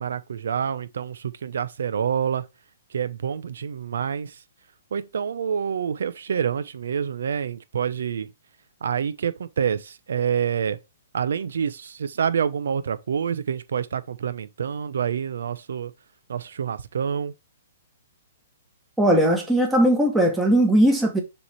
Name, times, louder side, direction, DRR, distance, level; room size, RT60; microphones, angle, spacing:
voice 1, 0.0-2.5 2.9-4.3 4.9-8.3 8.8-10.8 11.1-15.9 16.3-17.3, right 7 dB, 75° right, 0.8 m, -27 dB
voice 2, 19.0-21.2, right 1 dB, 5° right, 1.3 m, -19 dB
7.1 x 3.3 x 4.4 m
hypercardioid pair, 165°, 0 cm